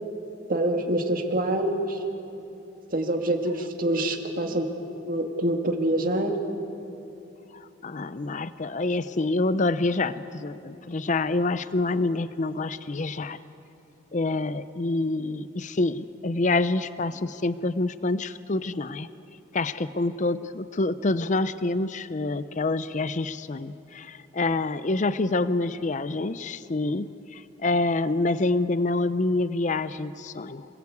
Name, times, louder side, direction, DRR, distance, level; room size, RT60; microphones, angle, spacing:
voice 1, 0.5-2.0 2.9-4.7 5.1-6.4, right 1 dB, 50° right, 3 dB, 2.1 m, -26 dB
voice 2, 7.5-13.4 14.1-19.1 19.5-30.7, left 2 dB, 40° left, 14 dB, 0.6 m, -27 dB
27.0 x 20.5 x 8.4 m, 2.8 s
head